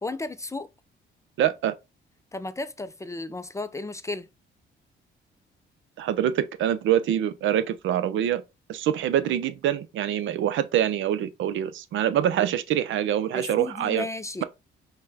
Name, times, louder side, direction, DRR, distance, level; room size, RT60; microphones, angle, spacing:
voice 1, 0.0-0.7 2.3-4.3 13.3-14.4, left 2 dB, 15° left, 0.3 m, -34 dB
voice 2, 1.4-1.7 6.0-8.4 8.7-14.1, right 10 dB, 75° right, 0.5 m, -25 dB
5.5 x 2.2 x 3.3 m
cardioid pair, 90°, 20 cm